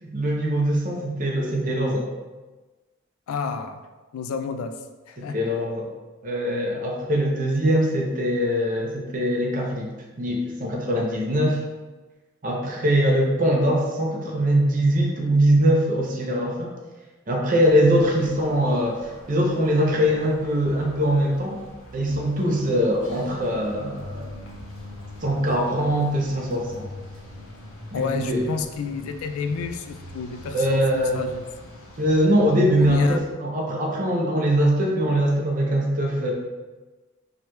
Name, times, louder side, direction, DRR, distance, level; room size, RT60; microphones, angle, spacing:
voice 1, 0.0-2.1 5.2-5.9 6.2-9.9 10.2-11.6 12.4-16.7 17.3-19.0 19.3-21.6 21.9-24.3 25.2-26.9 27.9-28.4 30.5-31.2 32.0-36.3, equal, 40° right, -1 dB, 0.6 m, -22 dB
voice 2, 3.3-3.8 4.1-4.8 5.1-5.4 27.9-31.5 32.8-33.2, left 5 dB, 90° left, 8 dB, 0.3 m, -30 dB
sound 1, 17.6-33.2, left 1 dB, 65° left, 0.8 m, -43 dB
4.6 x 2.2 x 3.0 m, 1.2 s
head